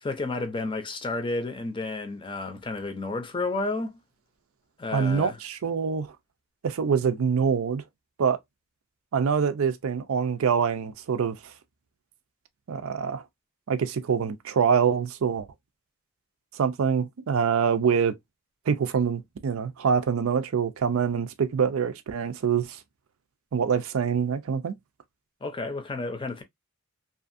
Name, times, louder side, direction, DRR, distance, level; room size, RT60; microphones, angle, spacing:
voice 1, 0.0-4.0 4.8-5.4 25.4-26.4, left 3 dB, 25° left, 0.5 m, -31 dB
voice 2, 4.9-6.1 6.6-7.8 8.2-8.4 9.1-11.4 12.7-13.2 13.7-15.5 16.5-18.1 18.7-22.8 23.5-24.8, right 6 dB, 85° right, 0.4 m, -25 dB
2.7 x 2.5 x 2.5 m
head